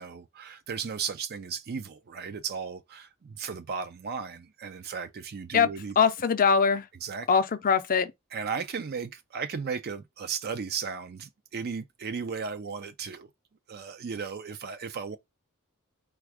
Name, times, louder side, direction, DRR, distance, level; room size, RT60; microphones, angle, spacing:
voice 1, 0.0-6.0 7.0-7.3 8.3-13.3 13.7-15.2, right 6 dB, 45° right, 0.4 m, -35 dB
voice 2, 6.0-6.8 7.3-8.1, left 6 dB, 40° left, 0.5 m, -22 dB
4.3 x 2.4 x 4.7 m
head